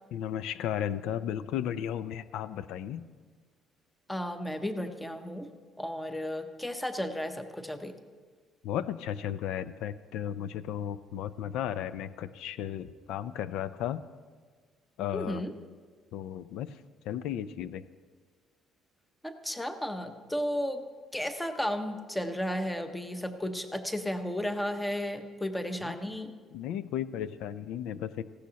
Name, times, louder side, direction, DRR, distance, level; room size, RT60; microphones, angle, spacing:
voice 1, 0.1-3.1 8.6-14.0 15.0-15.4 16.1-16.8 17.0-17.9 25.8-25.9 26.5-28.3, left 10 dB, 80° left, 14 dB, 0.4 m, -34 dB
voice 2, 4.1-5.5 5.8-7.9 15.1-15.5 19.2-20.8 21.1-26.3, left 1 dB, 5° left, 7 dB, 0.7 m, -33 dB
18.0 x 15.5 x 2.8 m, 1.5 s
cardioid pair, 180°, 0 cm